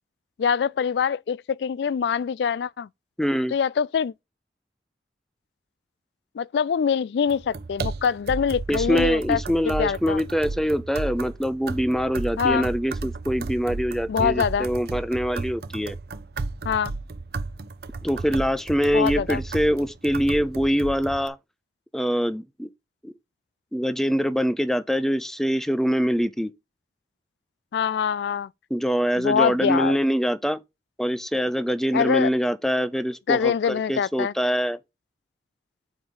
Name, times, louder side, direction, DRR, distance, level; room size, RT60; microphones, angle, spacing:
voice 1, 0.4-2.9 3.5-4.1 6.4-9.4 9.8-10.2 12.4-12.7 14.1-14.7 16.6-16.9 18.9-19.4 27.7-28.5 29.2-30.0 31.9-32.3 33.3-34.3, left 7 dB, 70° left, 0.3 m, -24 dB
voice 2, 3.2-3.5 8.7-16.0 18.0-21.4 21.9-22.7 23.0-23.1 23.7-26.5 28.7-30.6 31.0-34.8, equal, ahead, 0.4 m, -24 dB
sound 1, 7.3-21.3, right 3 dB, 55° right, 0.6 m, -33 dB
6.4 x 4.7 x 5.2 m
head